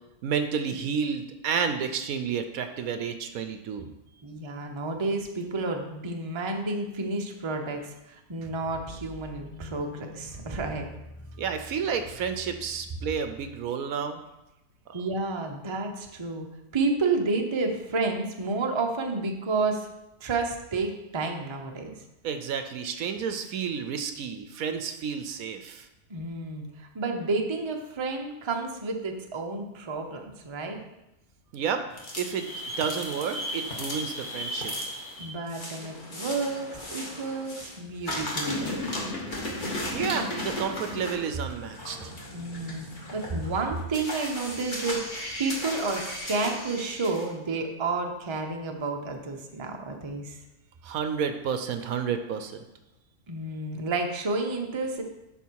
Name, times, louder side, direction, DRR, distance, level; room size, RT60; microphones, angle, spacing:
voice 1, 0.2-3.9 11.4-14.2 14.9-15.0 22.2-25.9 31.5-31.8 32.2-32.5 32.8-34.7 39.9-42.1 50.8-52.6, right 7 dB, 70° right, 8 dB, 1.0 m, -31 dB
voice 2, 4.2-10.9 14.9-16.5 16.7-19.9 20.2-21.9 26.1-30.8 35.2-38.8 42.3-42.8 43.1-50.4 53.3-55.0, right 3 dB, 25° right, 3 dB, 0.6 m, -30 dB
sound 1, 8.4-13.6, left 1 dB, 10° left, 0.8 m, -45 dB
sound 2, 31.9-37.8 38.0-47.3, left 1 dB, 30° left, 1.6 m, -35 dB
11.0 x 4.3 x 4.6 m, 0.93 s
omnidirectional pair, 1.6 m